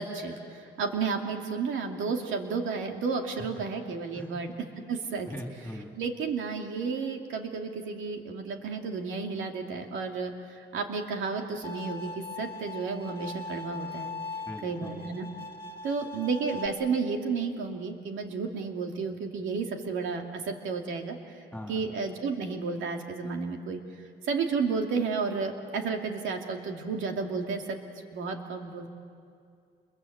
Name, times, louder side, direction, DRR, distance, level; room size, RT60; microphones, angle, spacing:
voice 1, 0.0-4.5 4.9-5.3 6.0-14.1 14.6-15.3 15.8-21.2 21.7-23.8 24.3-27.8 28.1-28.9, right 5 dB, 80° right, 3 dB, 2.6 m, -32 dB
voice 2, 5.3-5.9 14.5-15.1 21.5-21.9, left 1 dB, 5° left, 1 dB, 3.6 m, -41 dB
Bowed string instrument, 11.6-16.7, left 3 dB, 25° left, 2.4 m, -40 dB
28.0 x 22.5 x 8.0 m, 2.3 s
cardioid pair, 90°, 20 cm